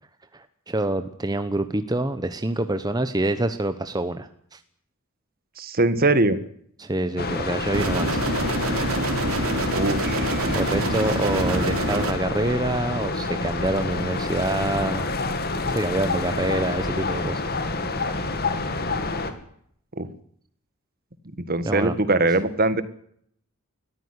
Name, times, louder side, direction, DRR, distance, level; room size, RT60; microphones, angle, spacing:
voice 1, 0.3-4.6 6.8-8.2 10.5-15.1 15.7-17.4 21.6-21.9, right 1 dB, 20° right, 10 dB, 1.0 m, -26 dB
voice 2, 5.6-6.4 9.7-10.6 20.0-20.1 21.5-22.8, right 2 dB, 40° right, 13 dB, 1.7 m, -22 dB
sound 1, 7.2-19.3, left 3 dB, 45° left, 2.6 m, -28 dB
sound 2, 7.7-12.1, right 1 dB, 70° right, 3.4 m, -26 dB
21.5 x 14.5 x 9.8 m, 0.68 s
head